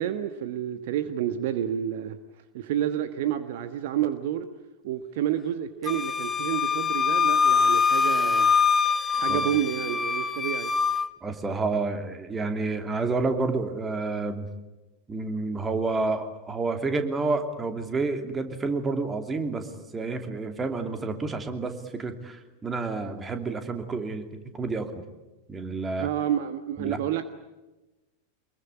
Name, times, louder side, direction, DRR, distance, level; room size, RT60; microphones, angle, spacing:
voice 1, 0.0-2.2 2.5-4.5 4.8-8.5 9.1-10.7 26.0-27.3, right 11 dB, 50° right, 10 dB, 1.3 m, -29 dB
Wind instrument woodwind instrument, 5.9-11.1, left 6 dB, 15° left, 1.1 m, -23 dB
voice 2, 11.2-14.5 15.1-24.2 24.5-24.9 25.5-26.1 26.8-27.0, right 3 dB, 15° right, 7 dB, 2.9 m, -29 dB
25.0 x 22.0 x 9.8 m, 1.1 s
figure-of-eight pair, 90°, 0 cm